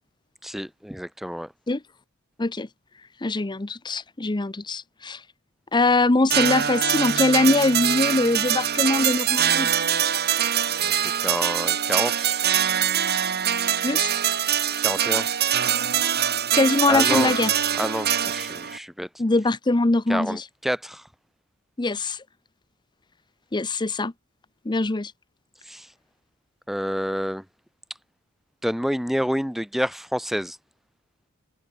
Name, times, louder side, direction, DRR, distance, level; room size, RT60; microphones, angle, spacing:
voice 1, 0.4-1.5 10.8-12.4 14.8-15.3 16.9-17.3 17.8-19.1 20.1-21.0 25.6-25.9 26.7-27.4 28.6-30.6, equal, ahead, 3.5 m, -28 dB
voice 2, 3.2-5.2 5.7-9.7 13.8-14.1 16.6-17.5 19.2-20.4 21.8-22.2 23.5-24.1 24.6-25.1, left 2 dB, 20° left, 0.7 m, -22 dB
sound 1, 6.3-18.8, right 9 dB, 50° right, 2.6 m, -23 dB
head